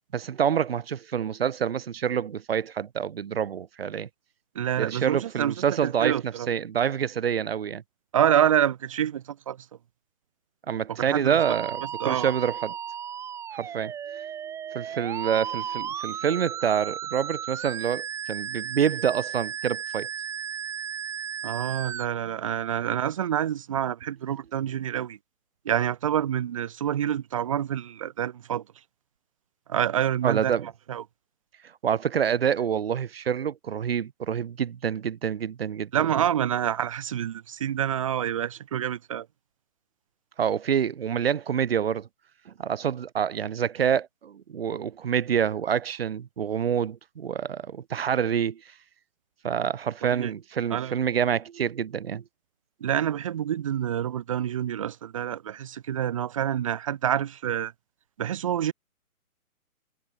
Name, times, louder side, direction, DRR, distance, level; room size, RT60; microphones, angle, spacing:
voice 1, 0.1-4.1 4.8-7.8 10.7-12.7 13.5-14.3 14.7-20.1 30.2-30.7 31.8-35.9 40.4-42.1 42.5-48.6 49.4-52.2, right 8 dB, 40° right, 4.2 m, -27 dB
voice 2, 4.5-5.5 5.8-6.5 8.1-9.7 11.0-11.4 12.0-12.3 21.4-25.2 25.6-28.6 29.7-31.0 35.9-39.3 50.0-50.3 50.7-51.0 52.8-57.7 58.2-58.7, right 10 dB, 25° right, 1.4 m, -27 dB
Musical instrument, 11.4-22.1, right 8 dB, 5° right, 3.2 m, -35 dB
hypercardioid pair, 170°, 43 cm